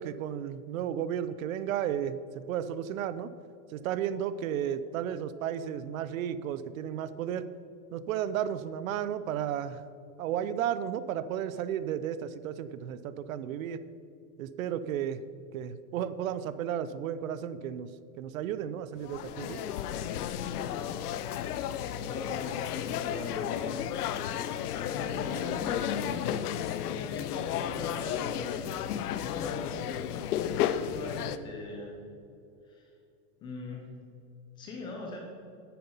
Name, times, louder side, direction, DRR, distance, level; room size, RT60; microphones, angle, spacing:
voice 1, 0.0-3.3 3.7-7.5 7.9-9.8 10.2-13.8 14.4-15.2 15.5-17.9 18.2-19.6, right 9 dB, 65° right, 14 dB, 0.7 m, -33 dB
sound 1, 19.0-31.4, left 10 dB, 90° left, 0.7 m, -33 dB
voice 2, 22.0-23.8 24.9-26.5 26.9-29.8 30.3-31.9 32.6-32.9 33.4-33.9 34.6-35.3, left 3 dB, 10° left, 0 dB, 0.4 m, -41 dB
9.5 x 8.6 x 5.5 m, 2.6 s
supercardioid pair, 160°, 44 cm